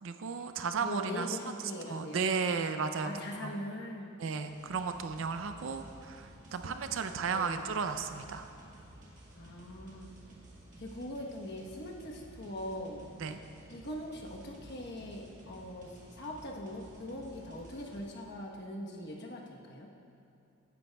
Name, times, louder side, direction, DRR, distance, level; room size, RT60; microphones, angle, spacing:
voice 1, 0.0-1.4 1.9-3.1 3.4-3.5 4.2-8.5 13.2-13.4, right 5 dB, 65° right, 8 dB, 0.5 m, -34 dB
voice 2, 0.8-2.3 3.0-4.1 6.6-6.8 7.1-7.6 9.4-10.1 10.8-13.1 13.7-19.9, left 1 dB, 55° left, -1 dB, 1.1 m, -41 dB
sound 1, 4.5-18.0, right 1 dB, 35° right, 1.5 m, -54 dB
14.5 x 9.4 x 2.3 m, 2.7 s
head